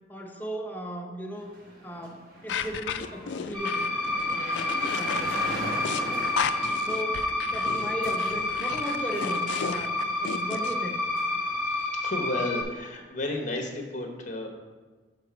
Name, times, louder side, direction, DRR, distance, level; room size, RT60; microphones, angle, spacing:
voice 1, 0.1-1.5 1.8-3.9 4.3-5.5 5.7-5.9 6.9-11.0, equal, 10° left, 2 dB, 0.6 m, -37 dB
sound 1, 1.3-11.8, equal, 55° right, 1.1 m, -41 dB
sound 2, 2.5-10.7, left 7 dB, 75° left, 0.3 m, -34 dB
sound 3, 3.5-12.6, left 2 dB, 25° right, 1.1 m, -29 dB
voice 2, 11.7-14.5, left 2 dB, 45° left, 3 dB, 0.9 m, -32 dB
6.1 x 4.1 x 5.8 m, 1.3 s
head